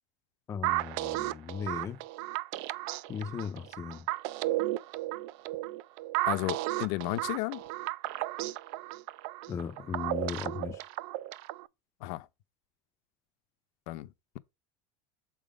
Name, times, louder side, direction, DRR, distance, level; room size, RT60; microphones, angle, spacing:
voice 1, 0.5-2.0 3.1-4.1 9.5-10.8, left 7 dB, 20° left, 0.5 m, -37 dB
sound 1, 0.6-11.7, right 17 dB, 55° right, 0.4 m, -34 dB
voice 2, 6.3-7.6 12.0-12.3 13.9-14.1, left 18 dB, 60° left, 0.6 m, -33 dB
7.0 x 3.6 x 5.1 m
cardioid pair, 160°, 16 cm